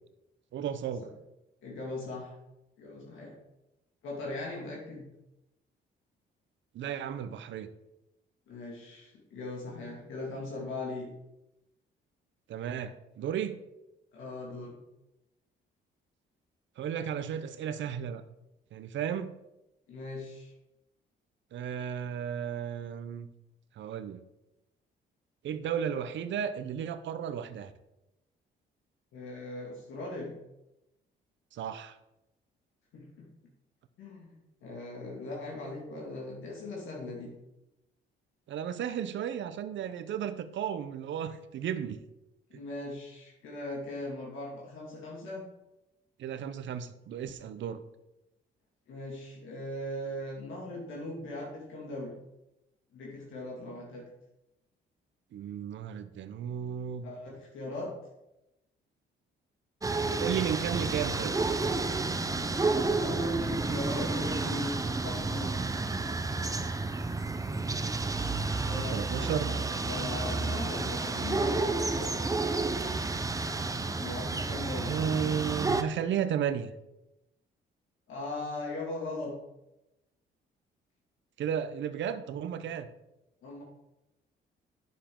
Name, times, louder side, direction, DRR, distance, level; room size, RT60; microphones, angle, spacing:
voice 1, 0.5-1.1 6.7-7.7 12.5-13.6 16.8-18.2 18.7-19.3 21.5-23.3 23.7-24.2 25.4-27.7 31.5-32.0 38.5-42.0 42.5-42.6 46.2-47.8 55.3-57.1 60.2-61.4 68.8-69.5 74.9-76.7 81.4-82.9, right 8 dB, 70° right, 12 dB, 0.7 m, -34 dB
voice 2, 1.6-2.3 2.8-3.4 4.0-5.1 8.5-11.1 14.1-14.8 19.9-20.5 29.1-30.3 32.9-33.3 34.0-34.3 34.6-37.3 42.5-45.4 48.9-52.1 52.9-54.0 57.0-57.9 62.3-62.6 63.0-65.6 68.6-72.1 74.0-75.0 78.1-79.3 83.4-83.6, left 2 dB, 80° left, -3 dB, 2.4 m, -39 dB
sound 1, 59.8-75.8, right 3 dB, 15° right, 0.7 m, -31 dB
9.4 x 6.9 x 3.8 m, 0.92 s
cardioid pair, 90°, 20 cm